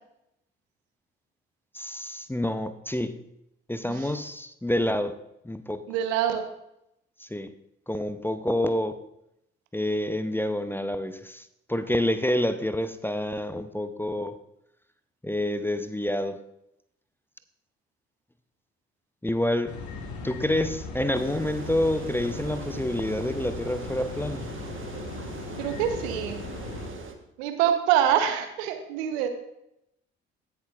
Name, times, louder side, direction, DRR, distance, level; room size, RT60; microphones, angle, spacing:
voice 1, 1.7-3.2 3.7-5.1 5.4-5.8 7.2-7.5 7.9-9.0 9.7-14.3 15.2-16.4 19.2-19.7 20.2-24.5, left 1 dB, 5° left, 11 dB, 0.7 m, -28 dB
voice 2, 5.9-6.4 25.6-26.4 27.4-29.3, right 10 dB, 75° right, 8 dB, 1.0 m, -25 dB
sound 1, 19.7-26.9, left 4 dB, 60° left, 1.6 m, -38 dB
sound 2, 21.1-27.1, right 4 dB, 35° right, 1.3 m, -41 dB
16.0 x 6.8 x 2.5 m, 0.81 s
figure-of-eight pair, 40°, 33 cm